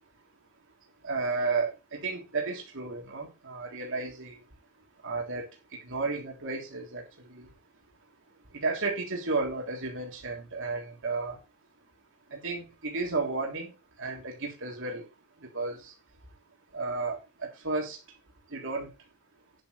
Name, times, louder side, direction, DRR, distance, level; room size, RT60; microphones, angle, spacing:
voice 1, 1.0-4.4 5.0-7.0 7.3-7.5 8.5-11.4 12.3-13.7 14.0-15.1 15.4-15.9 16.7-18.0 18.5-18.9, right 3 dB, 60° right, 3.5 m, -33 dB
11.0 x 10.0 x 3.4 m
head